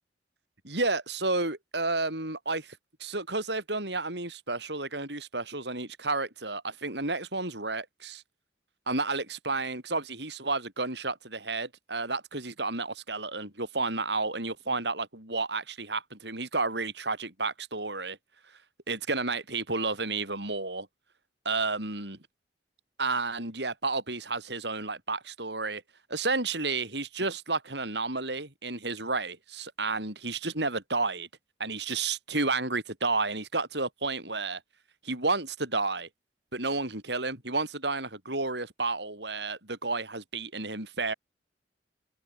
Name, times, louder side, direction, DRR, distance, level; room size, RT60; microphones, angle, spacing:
voice 1, 0.6-8.2 8.9-18.2 18.9-20.9 21.4-22.2 23.0-25.8 26.1-31.3 31.6-34.6 35.0-36.1 36.5-41.1, right 3 dB, 70° right, 7.7 m, -31 dB
head